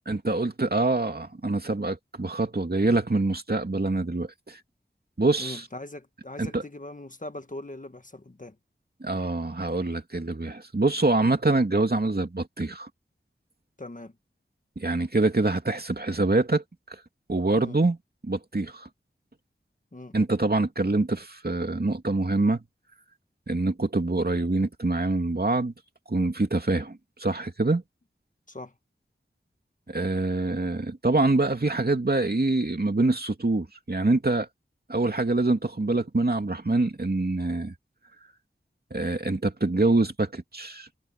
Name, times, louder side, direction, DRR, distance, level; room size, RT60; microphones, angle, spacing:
voice 1, 0.1-4.6 5.2-5.7 6.4-6.6 9.0-12.9 14.8-16.6 17.3-18.0 18.2-18.9 20.1-22.6 23.5-25.7 26.1-27.8 29.9-34.5 34.9-37.7 38.9-40.9, right 2 dB, 50° right, 2.7 m, -25 dB
voice 2, 5.4-8.5 13.8-14.1 17.5-17.8 19.9-20.2 28.5-28.7, left 2 dB, 40° left, 1.6 m, -40 dB
wide cardioid pair, 50°, 21 cm